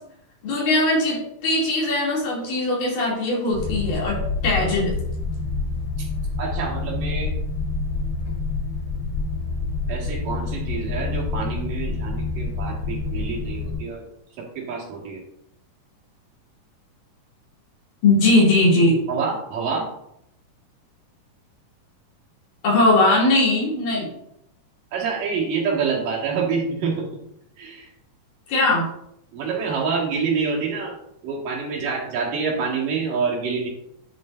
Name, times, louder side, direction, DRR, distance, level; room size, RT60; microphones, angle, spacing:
voice 1, 0.4-4.9 18.0-19.0 22.6-24.1 28.5-28.9, left 2 dB, 80° left, -5 dB, 4.4 m, -20 dB
sound 1, 3.5-13.8, left 3 dB, 40° left, 3.6 m, -27 dB
voice 2, 6.4-7.3 9.9-14.1 14.4-15.2 19.1-19.9 24.9-27.1 27.6-27.9 29.3-31.0 31.2-33.7, right 5 dB, 80° right, -3 dB, 3.6 m, -27 dB
10.5 x 6.7 x 2.6 m, 0.77 s
omnidirectional pair, 3.7 m